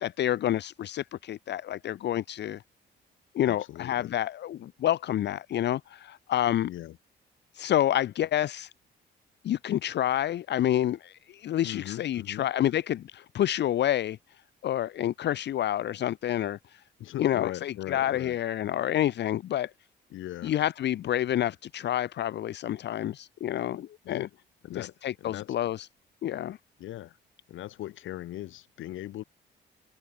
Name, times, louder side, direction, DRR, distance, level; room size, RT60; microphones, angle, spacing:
voice 1, 0.0-2.6 3.3-6.7 7.5-8.7 9.4-14.2 14.6-16.8 17.2-19.7 20.4-24.3 24.7-25.9 26.2-26.6, left 12 dB, 60° left, 0.7 m, -28 dB
voice 2, 3.4-4.2 6.6-7.0 11.6-12.5 17.0-18.4 20.1-20.6 24.0-24.3 24.6-25.5 26.8-27.2 27.5-29.2, left 14 dB, 80° left, 2.6 m, -39 dB
cardioid pair, 90°, 20 cm